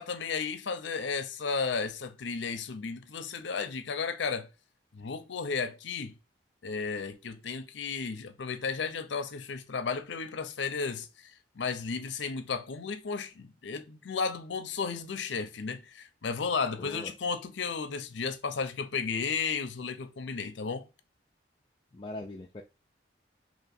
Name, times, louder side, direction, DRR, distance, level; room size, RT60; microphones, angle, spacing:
voice 1, 0.0-4.5 4.9-6.2 6.6-11.3 11.6-20.9, left 5 dB, 75° left, 0.6 m, -34 dB
voice 2, 16.8-17.1 21.9-22.6, left 2 dB, 25° left, 0.4 m, -40 dB
2.9 x 2.8 x 4.2 m
head